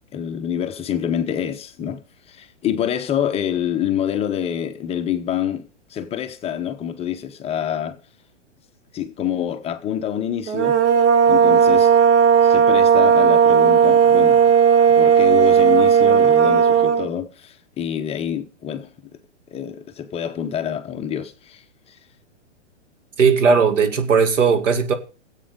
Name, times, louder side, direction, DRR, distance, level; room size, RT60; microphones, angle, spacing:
voice 1, 0.1-2.0 2.3-8.0 8.9-10.8 11.3-11.9 12.4-14.4 14.9-19.1 19.5-22.0, left 9 dB, 15° left, 0.6 m, -27 dB
sound 1, 10.5-17.1, right 7 dB, 60° right, 1.9 m, -14 dB
voice 2, 23.2-24.9, right 5 dB, 80° right, 2.4 m, -17 dB
19.0 x 8.1 x 5.0 m
hypercardioid pair, 130°, 37 cm